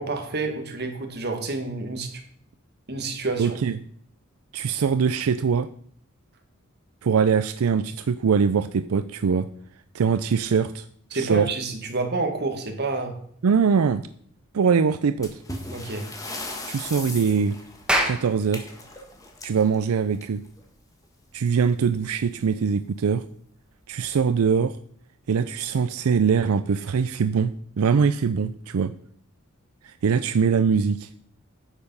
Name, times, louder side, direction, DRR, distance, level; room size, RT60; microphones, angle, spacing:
voice 1, 0.0-2.2 2.9-3.6 11.1-13.2 15.7-16.1, right 3 dB, 50° right, 4 dB, 1.7 m, -29 dB
voice 2, 3.4-3.8 4.5-5.7 7.0-9.5 9.9-10.8 11.1-11.5 13.4-14.0 14.5-15.4 16.7-17.6 18.1-18.6 19.4-20.4 21.3-23.2 23.9-24.8 25.3-27.5 27.8-28.9 29.8-31.1, right 6 dB, 85° right, 12 dB, 0.4 m, -22 dB
sound 1, 15.2-20.6 21.9-22.0 22.3-22.4 23.1-23.2 23.8-24.1, left 2 dB, 15° left, 1.6 m, -38 dB
Clapping, 17.9-22.6, right 1 dB, 5° right, 1.4 m, -31 dB
9.8 x 7.0 x 5.5 m, 0.64 s
head